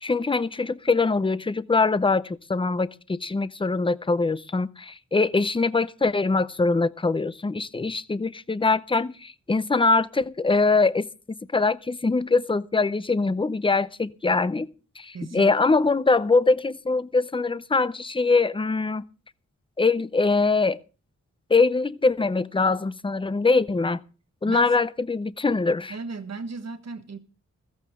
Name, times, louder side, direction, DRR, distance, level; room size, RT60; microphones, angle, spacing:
voice 1, 0.0-14.7 15.0-19.0 19.8-20.8 21.5-24.0 24.4-26.0, left 3 dB, 15° left, 0.5 m, -23 dB
voice 2, 15.1-15.5 24.4-24.7 25.9-27.2, right 4 dB, 60° right, 1.4 m, -35 dB
15.0 x 14.0 x 3.6 m
wide cardioid pair, 105°, 30 cm